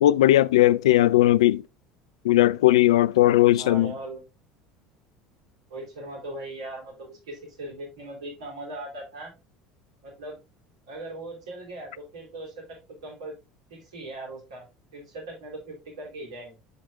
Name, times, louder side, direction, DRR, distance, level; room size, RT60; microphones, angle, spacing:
voice 1, 0.0-1.6 2.2-3.9, left 15 dB, 75° left, 0.3 m, -18 dB
voice 2, 3.6-4.2 5.7-9.3 10.0-10.4 10.9-13.3 13.7-14.6 14.9-16.6, right 2 dB, 75° right, 3.5 m, -39 dB
7.9 x 6.3 x 2.4 m
hypercardioid pair, 70°, 3 cm